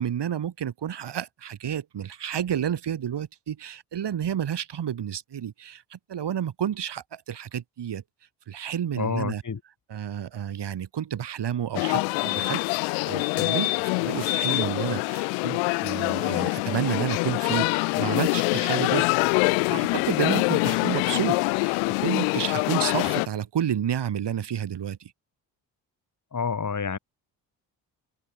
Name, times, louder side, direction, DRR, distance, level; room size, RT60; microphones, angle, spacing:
voice 1, 0.0-8.0 8.5-9.4 9.9-12.6 13.0-19.1 19.5-25.1, right 9 dB, 60° right, 5.5 m, -30 dB
voice 2, 9.0-9.6 26.3-27.0, left 5 dB, 40° left, 4.1 m, -28 dB
sound 1, 11.7-23.3, left 36 dB, 90° left, 3.4 m, -25 dB
open air
hypercardioid pair, 50°, 46 cm